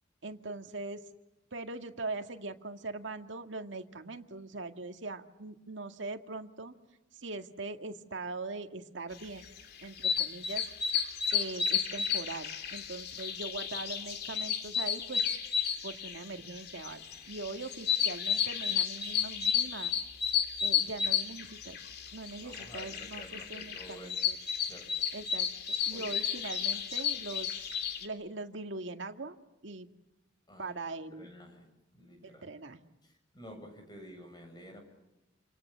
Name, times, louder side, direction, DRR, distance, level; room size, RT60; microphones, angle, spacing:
voice 1, 0.2-1.0 1.5-6.7 7.1-9.5 9.8-10.7 11.3-15.4 15.8-19.9 20.6-21.8 22.1-24.4 25.1-25.5 25.9-27.7 28.0-29.4 29.6-29.9 30.6-31.3 32.2-32.9, right 3 dB, 80° right, 6 dB, 2.1 m, -41 dB
sound 1, 9.4-28.1, left 8 dB, 60° left, 2.9 m, -33 dB
voice 2, 22.4-24.2 24.6-24.9 25.9-26.2 30.5-30.7 31.1-31.7 31.9-32.5 33.0-34.8, equal, 25° left, 4 dB, 7.7 m, -51 dB
28.5 x 28.0 x 7.5 m, 0.93 s
head